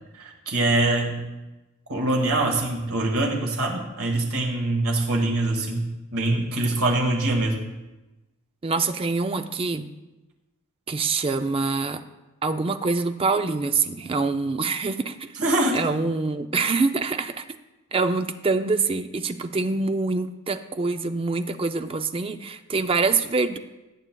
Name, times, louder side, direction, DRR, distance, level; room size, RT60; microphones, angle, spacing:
voice 1, 0.1-1.2 1.9-5.8 6.1-7.6 15.4-15.8, right 2 dB, 75° right, 0 dB, 1.8 m, -23 dB
voice 2, 8.6-9.9 10.9-12.0 12.4-15.3 15.7-17.5 17.9-23.6, right 4 dB, 25° right, 9 dB, 0.4 m, -25 dB
18.0 x 7.7 x 2.3 m, 1.1 s
head